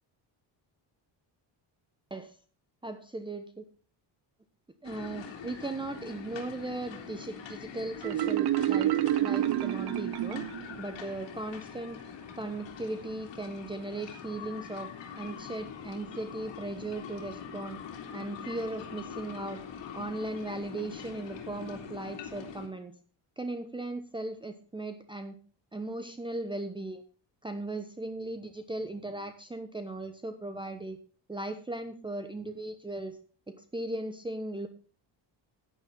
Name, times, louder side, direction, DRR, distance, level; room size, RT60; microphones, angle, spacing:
voice 1, 2.8-3.6 4.8-8.9 9.2-10.5 10.8-12.0 12.3-17.8 18.1-19.6 19.9-22.9 23.4-25.4 25.7-27.0 27.4-31.0 31.3-33.2 33.5-34.7, right 2 dB, 10° right, 8 dB, 1.0 m, -37 dB
sound 1, 4.8-22.7, left 7 dB, 70° left, 2.7 m, -43 dB
Marimba xylophone, 8.0-10.8, right 13 dB, 55° right, 0.7 m, -28 dB
10.5 x 10.5 x 3.9 m, 0.39 s
cardioid pair, 115°, 46 cm